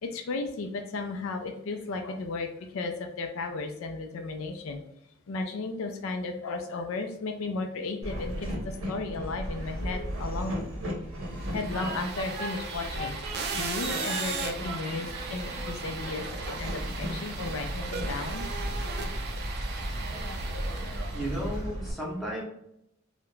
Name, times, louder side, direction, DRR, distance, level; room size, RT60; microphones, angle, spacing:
voice 1, 0.0-4.8 5.3-10.5 11.5-18.5, left 3 dB, 70° left, 4 dB, 0.4 m, -34 dB
Train, 8.0-21.9, equal, 85° right, 0.7 m, -35 dB
sound 1, 11.4-21.6, right 5 dB, 50° right, 0.4 m, -37 dB
voice 2, 21.1-22.4, right 1 dB, ahead, -5 dB, 0.7 m, -33 dB
2.4 x 2.1 x 3.0 m, 0.78 s
head